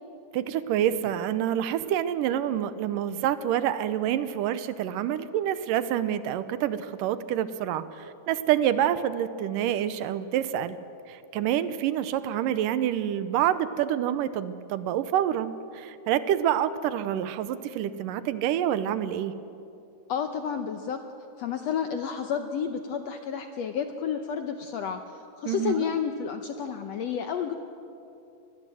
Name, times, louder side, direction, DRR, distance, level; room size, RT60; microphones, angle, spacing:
voice 1, 0.3-10.8 11.1-19.3 25.5-25.9, right 10 dB, 75° right, 14 dB, 2.3 m, -27 dB
voice 2, 20.1-21.0 21.4-25.0 25.4-27.5, left 7 dB, 70° left, 7 dB, 1.6 m, -30 dB
24.5 x 20.0 x 7.7 m, 2.7 s
omnidirectional pair, 4.0 m